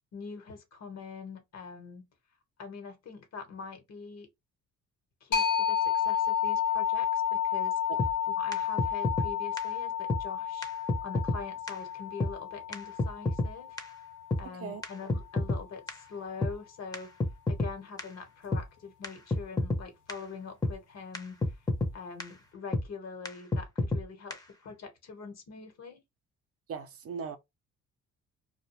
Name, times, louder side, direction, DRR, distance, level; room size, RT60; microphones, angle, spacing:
voice 1, 0.1-2.1 2.6-4.3 5.2-7.8 8.4-10.7 11.0-13.8 14.4-17.1 17.5-21.5 21.9-26.0, left 5 dB, 60° left, 1.0 m, -43 dB
sound 1, 5.3-14.7, left 9 dB, 80° left, 1.0 m, -31 dB
sound 2, 8.0-8.1 8.5-8.6 8.8-9.3 9.6-9.7 10.1-10.2 10.6-10.7 10.9-11.4 11.7-11.8 12.2-12.3 12.7-12.8 13.0-13.5 13.8-13.9 14.3-14.4 14.8-15.6 15.9-16.0 16.4-16.5 16.9-17.0 17.2-17.7 18.0-18.1 18.5-18.6 19.0-19.1 19.3-19.8 20.1-20.2 20.6-20.7 21.1-21.2 21.4-21.9 22.2-22.3 22.7-22.8 23.2-23.3 23.5-24.0 24.3-24.4, left 2 dB, 10° left, 0.6 m, -28 dB
voice 2, 14.4-14.8 26.7-27.4, right 6 dB, 50° right, 0.5 m, -38 dB
2.3 x 2.1 x 2.9 m
cardioid pair, 90°, 30 cm